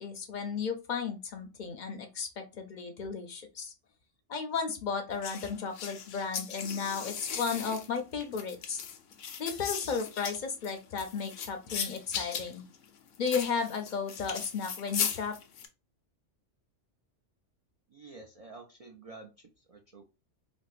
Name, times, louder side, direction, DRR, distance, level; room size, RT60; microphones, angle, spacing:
voice 1, 0.0-3.7 4.3-8.8 9.4-12.6 13.2-15.4, left 5 dB, 50° left, 5 dB, 0.6 m, -34 dB
sound 1, 5.2-15.7, left 7 dB, 80° left, 0.9 m, -38 dB
voice 2, 17.9-20.1, right 3 dB, 50° right, 1 dB, 0.4 m, -50 dB
4.4 x 2.0 x 2.4 m, 0.29 s
omnidirectional pair, 1.2 m